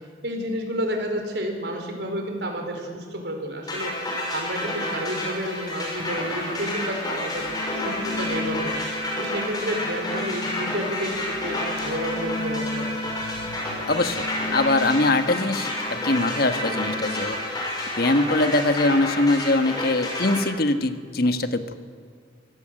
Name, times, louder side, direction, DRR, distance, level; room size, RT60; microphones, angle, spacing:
voice 1, 0.2-4.0 4.3-7.4 7.7-8.8 9.2-12.9 18.1-18.3, equal, 75° right, 3 dB, 4.7 m, -30 dB
sound 1, 3.7-20.4, left 1 dB, 25° left, 6.1 m, -30 dB
sound 2, 7.4-17.4, left 2 dB, 85° left, 1.1 m, -35 dB
voice 2, 13.9-17.4 18.0-21.8, left 2 dB, 60° left, 9 dB, 1.4 m, -22 dB
24.0 x 16.5 x 7.9 m, 2.1 s
head